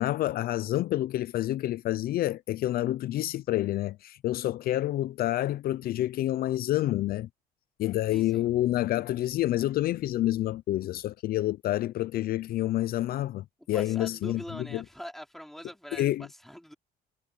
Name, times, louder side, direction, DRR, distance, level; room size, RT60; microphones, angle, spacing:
voice 1, 0.0-7.3 7.8-14.8 15.9-16.3, left 14 dB, 60° left, 0.5 m, -28 dB
voice 2, 8.1-8.4 13.6-16.7, equal, ahead, 4.8 m, -43 dB
cardioid pair, 110°, 17 cm